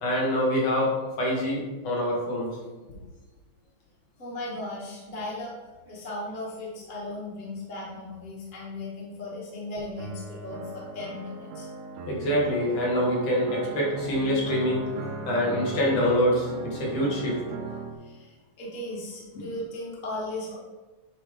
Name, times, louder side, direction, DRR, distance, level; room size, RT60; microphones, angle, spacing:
voice 1, 0.0-2.6 12.1-14.8 15.2-17.4 19.3-19.4, equal, 65° left, -3 dB, 2.6 m, -25 dB
voice 2, 4.2-5.5 5.8-11.7 18.0-20.5, left 2 dB, 25° left, -5 dB, 1.3 m, -37 dB
sound 1, 10.0-18.0, right 3 dB, 90° right, 2.2 m, -38 dB
8.8 x 3.2 x 4.9 m, 1.2 s
omnidirectional pair, 3.3 m